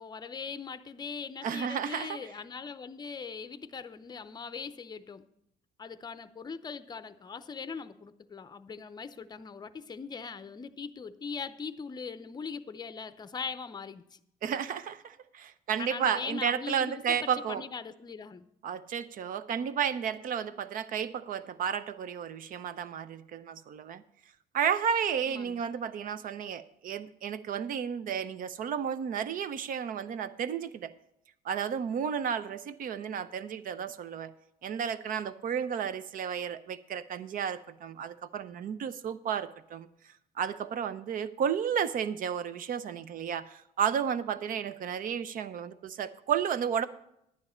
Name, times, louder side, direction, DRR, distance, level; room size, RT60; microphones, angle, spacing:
voice 1, 0.0-5.2 5.8-14.2 15.8-18.5 25.3-25.6, left 5 dB, 25° left, 12 dB, 0.6 m, -41 dB
voice 2, 1.4-2.2 14.4-17.6 18.6-24.0 24.5-30.9 31.4-34.3 34.6-39.9 40.4-46.9, right 8 dB, 55° right, 14 dB, 0.7 m, -32 dB
11.0 x 9.6 x 4.3 m, 0.76 s
cardioid pair, 110°, 17 cm